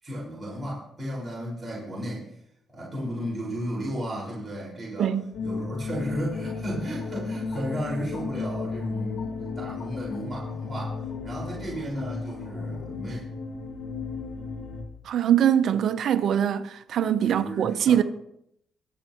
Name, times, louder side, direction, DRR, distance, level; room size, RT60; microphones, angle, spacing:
voice 1, 0.0-2.3 2.7-5.1 5.4-13.2 17.2-18.0, equal, 25° right, 5.1 m, -34 dB
sound 1, 5.3-14.8, left 4 dB, 90° left, 2.1 m, -34 dB
sound 2, 6.1-12.9, left 5 dB, 65° left, 2.1 m, -49 dB
voice 2, 15.0-18.0, right 9 dB, 65° right, 0.8 m, -23 dB
23.5 x 8.1 x 3.0 m
cardioid pair, 90°, 0 cm